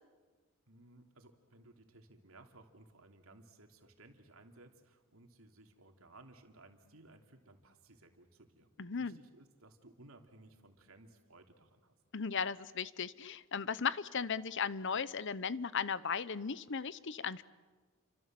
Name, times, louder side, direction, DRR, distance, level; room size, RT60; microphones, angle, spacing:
voice 1, 0.7-8.7 9.0-11.9, right 2 dB, 90° right, 5 dB, 2.9 m, -59 dB
voice 2, 8.8-9.2 12.1-17.4, left 6 dB, 60° left, 17 dB, 0.8 m, -36 dB
30.0 x 25.5 x 7.7 m, 1.4 s
head